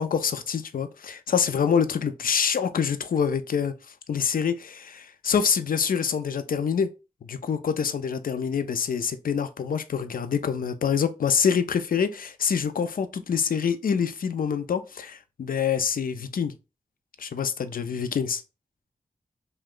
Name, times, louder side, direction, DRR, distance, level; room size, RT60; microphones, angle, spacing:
voice 1, 0.0-3.7 4.1-6.9 7.3-16.5 17.2-18.4, left 7 dB, 70° left, 0.4 m, -26 dB
2.9 x 2.2 x 3.6 m
wide cardioid pair, 65°, 15 cm